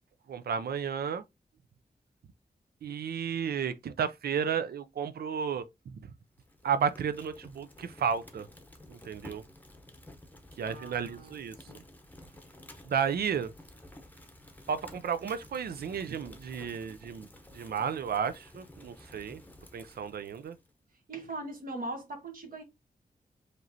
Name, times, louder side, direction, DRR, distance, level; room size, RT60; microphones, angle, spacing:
voice 1, 0.3-1.2 2.8-5.9 6.6-8.5 8.9-9.4 10.6-11.6 12.9-13.5 14.7-17.3 17.5-19.4 19.7-20.6, right 7 dB, 85° right, 0.4 m, -32 dB
Fire, 6.3-20.7, left 1 dB, 10° left, 0.8 m, -53 dB
voice 2, 10.6-11.4 11.7-11.8 21.1-22.6, right 2 dB, 65° right, 1.4 m, -40 dB
5.0 x 3.0 x 2.6 m
wide cardioid pair, 125°, 16 cm